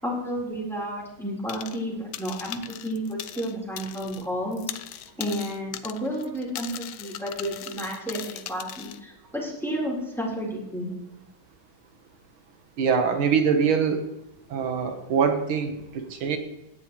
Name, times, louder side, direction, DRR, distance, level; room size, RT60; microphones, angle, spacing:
voice 1, 0.0-4.7 5.2-10.9, equal, ahead, -4 dB, 4.0 m, -31 dB
sound 1, 1.5-1.9 2.1-4.3 4.5-9.0, left 12 dB, 80° left, 1.4 m, -39 dB
voice 2, 12.8-14.1 14.5-16.4, right 6 dB, 75° right, 6 dB, 2.2 m, -24 dB
16.5 x 11.0 x 3.2 m, 0.90 s
omnidirectional pair, 2.3 m